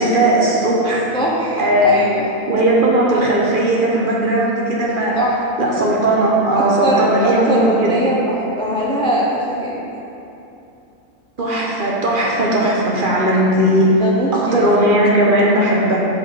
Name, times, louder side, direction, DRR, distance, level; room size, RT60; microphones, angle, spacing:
voice 1, 0.0-1.0 1.6-2.0 2.5-5.2 5.6-8.0 11.4-14.0 14.3-16.0, right 1 dB, 45° right, -4 dB, 1.0 m, -16 dB
voice 2, 1.1-2.3 5.2-5.4 6.5-9.8 14.0-14.7, right 1 dB, 10° left, -4 dB, 0.4 m, -21 dB
4.9 x 4.7 x 5.9 m, 2.8 s
omnidirectional pair, 1.4 m